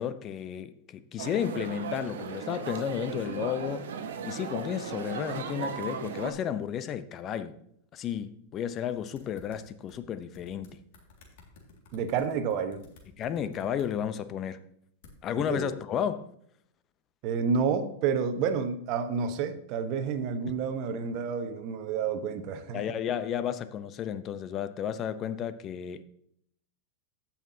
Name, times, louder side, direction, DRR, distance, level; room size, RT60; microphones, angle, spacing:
voice 1, 0.0-3.9 4.2-7.6 7.9-10.8 13.2-14.6 15.2-16.3 20.5-20.6 22.7-26.0, left 9 dB, 35° left, 0.7 m, -32 dB
sound 1, 1.2-6.3, right 6 dB, 80° right, 1.0 m, -36 dB
sound 2, 8.9-10.0 10.3-13.9 15.0-15.2, left 4 dB, 65° left, 2.1 m, -54 dB
voice 2, 11.9-12.8 15.3-15.7 17.2-22.8, right 6 dB, 50° right, 1.0 m, -29 dB
15.5 x 5.8 x 2.8 m
hypercardioid pair, 115°, 0 cm